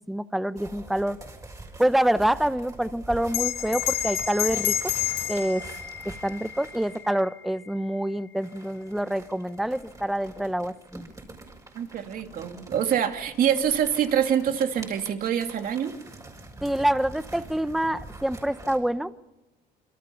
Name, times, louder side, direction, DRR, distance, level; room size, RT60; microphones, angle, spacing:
voice 1, 0.1-1.2 1.8-4.9 5.3-5.6 6.0-11.1 16.6-19.3, right 1 dB, ahead, 14 dB, 0.8 m, -26 dB
sound 1, 0.6-7.1 8.4-18.8, right 2 dB, 20° right, 6.3 m, -45 dB
Bell, 3.3-8.1, left 11 dB, 75° left, 6.8 m, -30 dB
voice 2, 11.7-16.0, right 9 dB, 55° right, 5 dB, 2.7 m, -25 dB
27.5 x 24.5 x 5.8 m, 1.0 s
cardioid pair, 110°, 17 cm